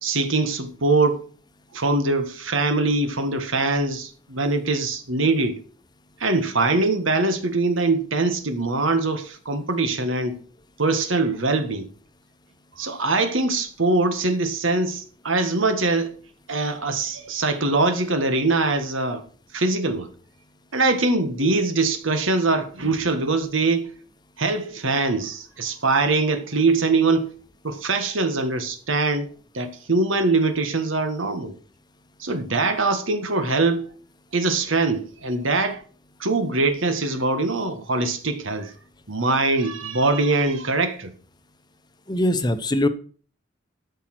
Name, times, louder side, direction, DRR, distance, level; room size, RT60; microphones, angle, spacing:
voice 1, 0.0-1.2 1.7-5.6 6.2-10.4 10.8-11.9 12.8-16.1 16.5-19.2 19.5-20.1 20.7-23.9 24.4-27.3 27.6-29.3 29.5-31.5 32.2-33.9 34.3-35.8 36.2-38.7 39.1-41.1, right 3 dB, 90° right, 1.6 m, -22 dB
voice 2, 42.1-42.9, left 1 dB, 20° left, 0.9 m, -22 dB
13.0 x 5.6 x 6.1 m
head